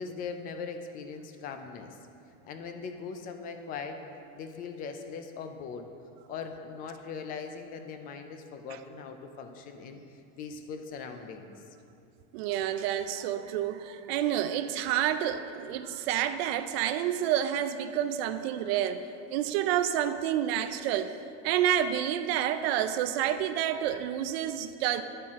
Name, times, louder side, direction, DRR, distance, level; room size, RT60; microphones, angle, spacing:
voice 1, 0.0-2.0 2.4-4.0 4.3-5.9 6.3-11.5, left 5 dB, 25° left, 6 dB, 0.4 m, -40 dB
voice 2, 12.3-19.0 19.3-21.1 21.4-25.0, right 10 dB, 70° right, 10 dB, 0.5 m, -29 dB
11.5 x 4.4 x 3.6 m, 2.6 s
supercardioid pair, 160°, 32 cm